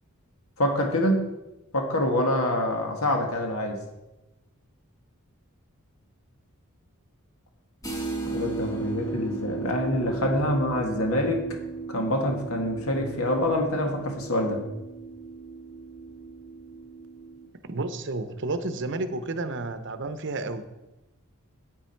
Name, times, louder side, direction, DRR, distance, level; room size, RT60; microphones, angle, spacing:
voice 1, 0.6-1.3 1.7-3.8 8.3-11.4 11.9-14.6, left 1 dB, 75° left, 2 dB, 1.8 m, -26 dB
sound 1, 7.8-17.5, right 4 dB, 15° left, 1.9 m, -36 dB
voice 2, 17.7-20.6, right 2 dB, 55° right, 11 dB, 0.8 m, -31 dB
9.6 x 8.9 x 4.5 m, 0.99 s
head